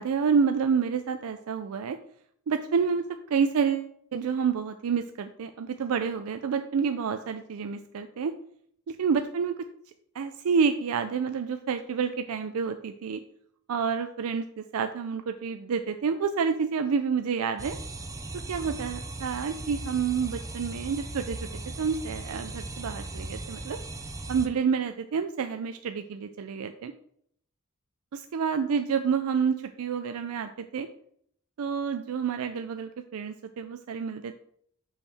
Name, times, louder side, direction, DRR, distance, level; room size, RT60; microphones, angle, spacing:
voice 1, 0.0-2.0 2.5-3.0 3.3-8.3 8.9-9.7 10.1-13.2 13.7-17.8 18.5-21.5 21.8-23.8 24.3-26.9 28.1-30.9 31.6-34.3, right 6 dB, 80° right, 8 dB, 0.4 m, -28 dB
sound 1, 17.6-24.5, right 2 dB, 15° right, 0.4 m, -38 dB
6.3 x 5.4 x 3.4 m, 0.67 s
head